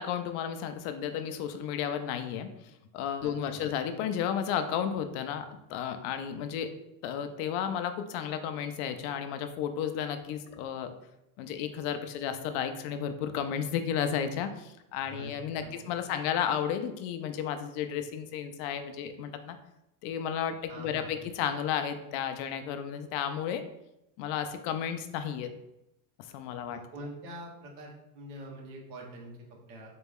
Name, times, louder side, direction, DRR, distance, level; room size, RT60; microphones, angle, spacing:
voice 1, 0.0-2.5 2.9-6.7 7.0-10.9 11.4-19.6 20.0-23.6 24.2-25.5 26.2-26.8, left 8 dB, 60° left, 8 dB, 0.5 m, -33 dB
voice 2, 3.2-3.7 15.1-15.3 15.6-16.1 20.7-21.3 26.7-29.9, right 1 dB, 85° right, -1 dB, 1.3 m, -45 dB
4.1 x 2.2 x 3.5 m, 0.86 s
cardioid pair, 155°, 49 cm